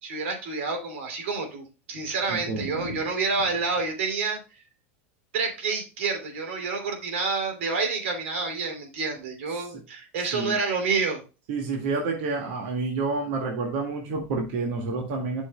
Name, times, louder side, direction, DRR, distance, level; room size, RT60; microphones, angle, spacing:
voice 1, 0.0-4.4 5.3-11.2, right 4 dB, 90° right, 4 dB, 3.2 m, -28 dB
voice 2, 2.3-2.7 10.3-10.6 11.5-15.4, right 3 dB, 60° right, 1 dB, 2.0 m, -29 dB
11.5 x 6.3 x 2.2 m, 0.31 s
supercardioid pair, 165°, 7 cm